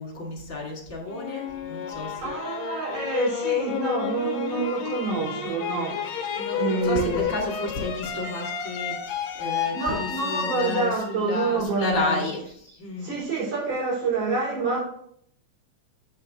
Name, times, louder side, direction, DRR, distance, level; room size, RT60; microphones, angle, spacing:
voice 1, 0.0-2.2 6.4-13.2, left 3 dB, 30° left, 2.4 m, -32 dB
sound 1, 1.1-12.1, left 8 dB, 70° left, 1.9 m, -31 dB
voice 2, 2.0-6.3 6.6-7.3 9.7-12.2 13.0-14.8, right 4 dB, 80° right, 5.3 m, -27 dB
7.1 x 6.7 x 3.7 m
omnidirectional pair, 3.4 m